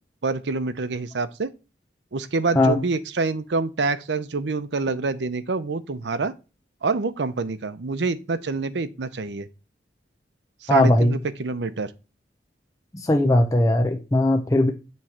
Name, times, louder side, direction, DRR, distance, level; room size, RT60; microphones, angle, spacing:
voice 1, 0.2-1.5 2.1-6.3 6.8-9.5 10.6-11.9, right 3 dB, 80° right, 0.7 m, -26 dB
voice 2, 10.7-11.1 12.9-14.7, left 1 dB, 20° left, 0.6 m, -19 dB
7.4 x 3.2 x 5.7 m
head